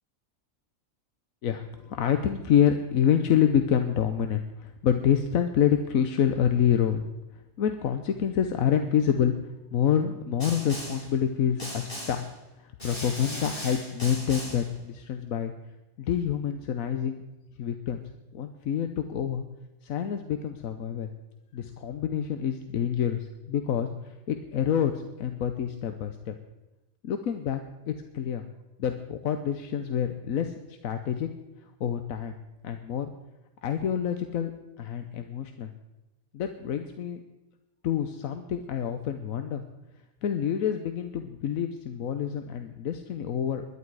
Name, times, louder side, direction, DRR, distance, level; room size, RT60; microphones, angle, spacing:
voice 1, 1.4-7.0 7.6-12.2 12.6-15.5 16.0-17.2 17.6-18.0 18.3-19.4 19.8-21.1 21.5-26.3 27.0-27.6 27.9-28.4 28.8-31.3 31.8-32.3 32.6-33.1 33.6-34.5 34.8-35.7 36.3-37.2 37.8-39.6 40.2-43.6, left 9 dB, 85° left, 7 dB, 1.3 m, -27 dB
Snare drum, 10.4-11.1 11.6-12.3 12.8-14.7, equal, 40° left, 5.5 m, -38 dB
20.5 x 11.5 x 4.8 m, 1.0 s
omnidirectional pair, 1.4 m